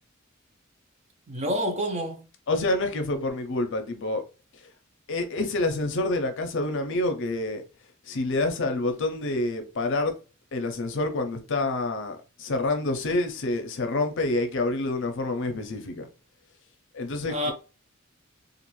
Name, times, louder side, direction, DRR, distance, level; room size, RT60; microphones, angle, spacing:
voice 1, 1.3-2.3 17.3-17.5, equal, 35° right, 0.6 m, -28 dB
voice 2, 2.5-4.2 5.1-7.6 8.1-10.1 10.5-16.1 16.9-17.5, left 2 dB, 65° left, 0.6 m, -27 dB
2.5 x 2.5 x 3.0 m
head